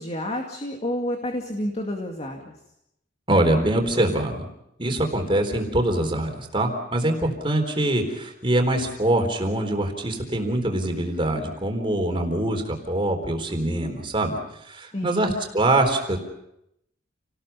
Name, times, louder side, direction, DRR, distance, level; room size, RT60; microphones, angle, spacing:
voice 1, 0.0-2.5 14.9-15.4, left 1 dB, 35° left, 2 dB, 2.3 m, -29 dB
voice 2, 3.3-4.4 4.8-14.4 14.6-16.2, right 1 dB, 25° right, 4 dB, 3.9 m, -24 dB
29.5 x 19.5 x 5.7 m, 0.82 s
head